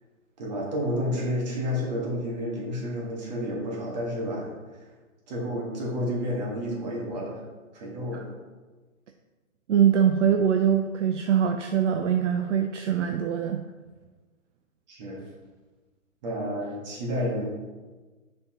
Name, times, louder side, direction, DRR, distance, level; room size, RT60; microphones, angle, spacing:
voice 1, 0.4-4.5 5.3-7.4 7.7-8.3 14.9-15.2 16.2-17.5, equal, 30° right, -2 dB, 1.5 m, -30 dB
voice 2, 9.7-13.6, right 8 dB, 60° right, 5 dB, 0.5 m, -23 dB
6.9 x 5.4 x 2.9 m, 1.3 s
hypercardioid pair, 170°, 41 cm